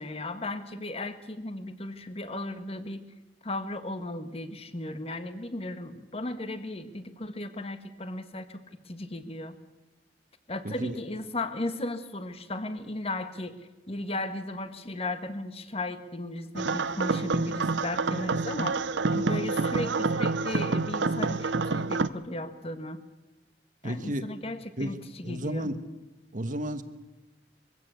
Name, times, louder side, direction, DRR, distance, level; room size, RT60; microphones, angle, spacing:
voice 1, 0.0-3.0 3.4-8.6 8.8-9.6 10.5-13.6 13.9-18.8 19.1-23.0 23.8-25.7, left 2 dB, 35° left, 10 dB, 1.4 m, -36 dB
voice 2, 10.6-11.0 23.8-24.2 24.8-25.0 25.2-25.8 26.3-26.8, equal, 45° right, 10 dB, 1.4 m, -32 dB
sound 1, 16.6-22.1, right 3 dB, 85° right, 0.7 m, -28 dB
23.0 x 16.0 x 8.1 m, 1.2 s
head